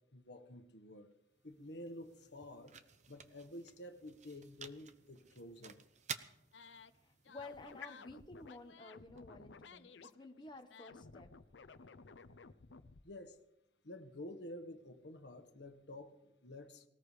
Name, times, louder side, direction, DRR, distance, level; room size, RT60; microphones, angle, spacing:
voice 1, 0.1-1.1 1.4-2.7 3.1-5.8 13.0-13.4 13.8-16.8, left 1 dB, 70° left, 7 dB, 1.4 m, -50 dB
sound 1, 1.1-9.2, right 7 dB, 40° right, 0.9 m, -53 dB
sound 2, 6.5-6.9 7.2-13.1, left 4 dB, 90° left, 0.7 m, -56 dB
voice 2, 7.0-11.3, left 2 dB, 25° left, 5 dB, 1.3 m, -53 dB
19.5 x 19.0 x 3.3 m, 0.87 s
head